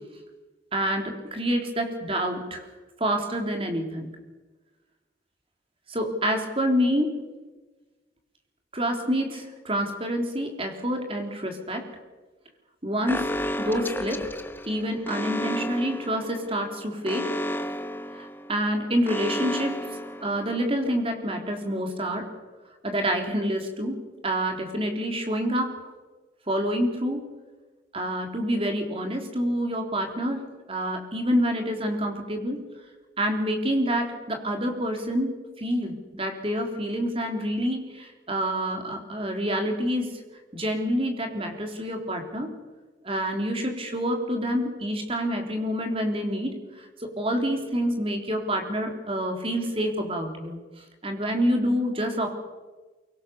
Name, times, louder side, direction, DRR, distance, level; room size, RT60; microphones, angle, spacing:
voice 1, 0.7-2.6 3.0-4.1 5.9-7.2 8.7-11.9 12.8-14.2 14.7-17.3 18.1-19.8 20.2-22.3 22.8-24.0 24.2-25.8 26.5-27.3 27.9-30.4 30.7-32.6 33.2-35.3 35.6-40.2 40.5-42.5 43.0-50.6 51.0-52.3, equal, 30° right, 4 dB, 3.5 m, -27 dB
Alarm, 13.1-20.8, left 1 dB, 10° left, 1.0 m, -33 dB
24.0 x 23.5 x 6.9 m, 1.3 s
head